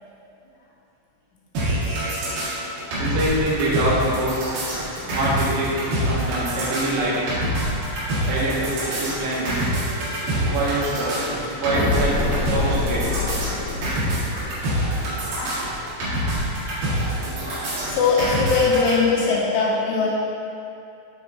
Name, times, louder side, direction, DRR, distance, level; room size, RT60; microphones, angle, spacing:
sound 1, 1.5-18.9, right 1 dB, 60° right, 3.0 m, -26 dB
voice 1, 3.0-4.4 5.1-7.4 8.3-9.8 10.3-13.2, right 1 dB, 85° right, -7 dB, 3.7 m, -25 dB
voice 2, 5.0-5.6 6.2-6.3 7.1-7.2 7.5-8.4 9.1-11.8 13.0-13.3 13.7-15.0 15.3-15.7 16.0-16.2 17.2-20.1, left 4 dB, 90° left, -6 dB, 3.5 m, -26 dB
sound 2, 11.7-15.4, left 3 dB, 65° left, 2.3 m, -27 dB
9.6 x 3.4 x 3.8 m, 2.6 s
omnidirectional pair, 5.4 m